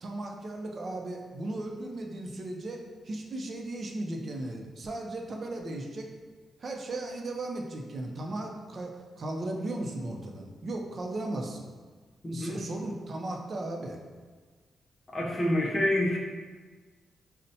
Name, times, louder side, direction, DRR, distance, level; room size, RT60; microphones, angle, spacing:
voice 1, 0.0-2.8 3.0-6.1 6.6-8.9 9.2-11.7 12.3-14.0, right 2 dB, 40° right, 1 dB, 0.4 m, -36 dB
voice 2, 12.2-12.6 15.1-16.2, left 1 dB, 25° left, -3 dB, 0.6 m, -27 dB
5.4 x 2.1 x 2.7 m, 1.4 s
wide cardioid pair, 140°, 0 cm